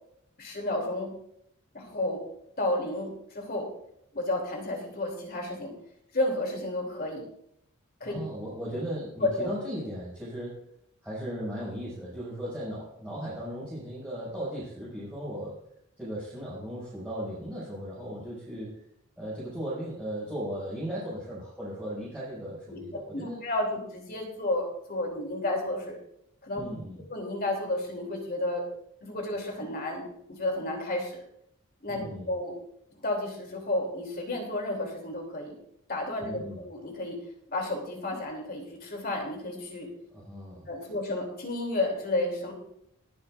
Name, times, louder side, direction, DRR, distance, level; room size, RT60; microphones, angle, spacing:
voice 1, 0.4-1.1 1.7-2.2 2.6-3.7 4.1-5.7 6.1-7.3 8.0-8.2 9.2-9.5 22.7-22.8 23.1-26.0 26.4-26.6 27.1-28.6 29.0-30.0 30.3-31.2 31.8-32.6 32.9-35.6 35.9-37.2 37.5-39.9 40.7-42.5, left 2 dB, 45° left, 1 dB, 3.2 m, -31 dB
voice 2, 8.0-10.6 11.0-15.6 16.0-18.8 19.2-23.4 26.5-27.0 31.9-32.3 36.2-36.6 40.1-40.9, equal, 5° right, -10 dB, 6.1 m, -37 dB
21.5 x 9.7 x 2.6 m, 0.72 s
head